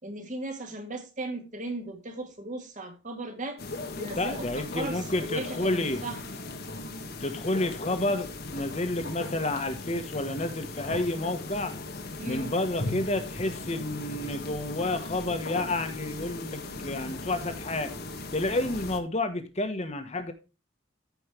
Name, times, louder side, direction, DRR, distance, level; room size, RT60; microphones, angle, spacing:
voice 1, 0.0-3.6 4.0-6.2 12.2-12.5, right 2 dB, 40° right, 2.2 m, -37 dB
sound 1, 3.6-19.0, left 2 dB, 50° left, 1.4 m, -38 dB
voice 2, 4.1-6.0 7.2-11.7 12.2-17.9 18.3-20.3, left 2 dB, 35° left, 1.3 m, -30 dB
14.0 x 5.3 x 3.4 m
head